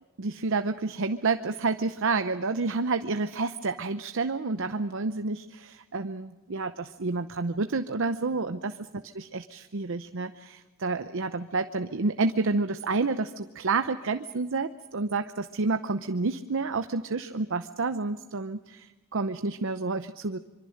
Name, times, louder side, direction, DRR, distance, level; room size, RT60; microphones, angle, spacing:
voice 1, 0.2-20.4, right 3 dB, 65° right, 9 dB, 0.7 m, -29 dB
25.5 x 24.0 x 6.5 m, 1.1 s
head